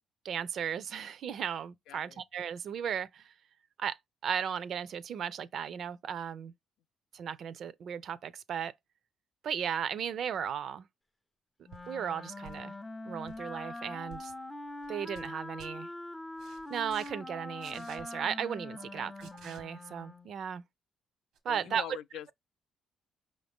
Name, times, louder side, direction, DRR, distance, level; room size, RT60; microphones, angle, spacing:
voice 1, 0.2-3.3 3.8-4.0 4.2-6.5 7.1-8.7 9.4-10.9 11.9-12.7 13.0-14.3 14.9-15.9 16.7-20.6 21.4-22.0, right 8 dB, 60° right, 0.4 m, -36 dB
voice 2, 1.9-2.2 18.9-19.1 21.5-22.3, left 11 dB, 85° left, 0.3 m, -44 dB
Wind instrument woodwind instrument, 11.7-20.3, left 2 dB, 15° left, 0.4 m, -43 dB
sound 1, 11.7-11.9 12.4-12.8 13.1-13.4 14.1-14.3 14.8-15.3 15.6-15.7 16.4-17.1 17.6-18.0 19.2-19.6 21.3-21.4, right 5 dB, 90° right, 1.1 m, -53 dB
5.4 x 2.6 x 3.5 m
cardioid pair, 110°, 0 cm